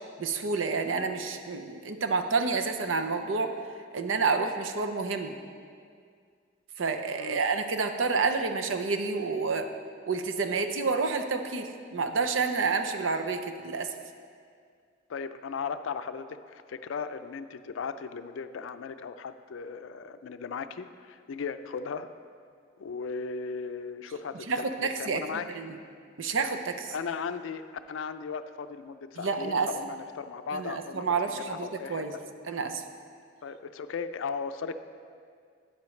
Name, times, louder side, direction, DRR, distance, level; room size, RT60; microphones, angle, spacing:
voice 1, 0.2-3.5 3.9-5.3 6.8-9.7 10.1-13.9 24.5-25.2 25.5-25.8 26.2-26.9 29.2-29.7 30.5-32.1 32.5-32.8, right 4 dB, 80° right, 6 dB, 0.6 m, -29 dB
voice 2, 15.1-22.1 22.8-25.5 26.9-32.0 33.4-34.8, left 5 dB, 80° left, 11 dB, 0.4 m, -37 dB
11.5 x 8.8 x 3.2 m, 2.2 s
head